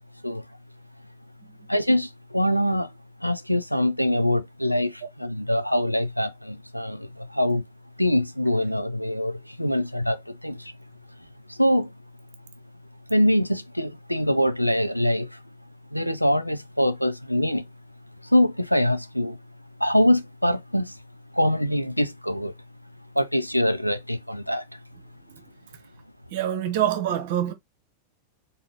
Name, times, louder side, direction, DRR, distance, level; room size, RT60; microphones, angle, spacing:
voice 1, 1.7-2.9 3.2-7.6 8.0-10.7 11.5-11.9 13.1-15.3 15.9-17.6 18.3-19.4 19.8-20.9 21.3-22.5 23.2-24.6, left 1 dB, 90° left, 0.4 m, -24 dB
voice 2, 26.3-27.5, right 11 dB, 50° right, 0.9 m, -26 dB
4.0 x 2.7 x 3.8 m
figure-of-eight pair, 90°, 0 cm